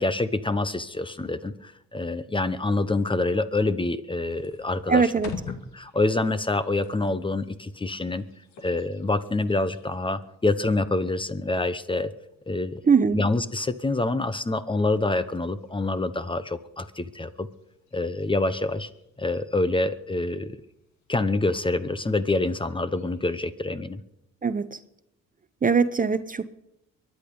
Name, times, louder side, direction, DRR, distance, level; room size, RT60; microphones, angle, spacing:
voice 1, 0.0-5.1 5.7-8.2 8.6-12.1 12.5-12.8 13.1-17.5 17.9-18.9 19.2-20.6 21.1-24.0, left 2 dB, 15° left, 13 dB, 0.8 m, -26 dB
sound 1, 4.2-23.3, left 5 dB, 65° left, 2.3 m, -49 dB
voice 2, 4.9-5.3 12.9-13.2 24.4-24.8 25.6-26.6, right 5 dB, 30° right, 13 dB, 0.7 m, -21 dB
23.0 x 10.5 x 5.4 m, 0.84 s
cardioid pair, 90°, 30 cm